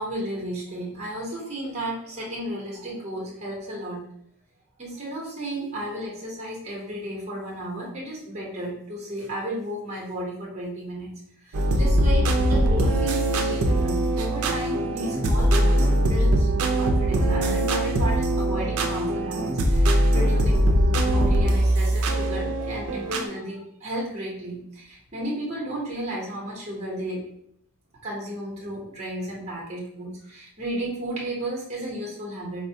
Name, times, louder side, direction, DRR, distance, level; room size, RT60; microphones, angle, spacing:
voice 1, 0.0-4.0 4.8-11.1 11.4-16.5 16.8-27.2 28.0-32.7, right 1 dB, 30° right, -3 dB, 0.8 m, -33 dB
sound 1, 11.5-23.3, right 1 dB, 70° right, 0.4 m, -21 dB
4.1 x 2.1 x 2.7 m, 0.72 s
head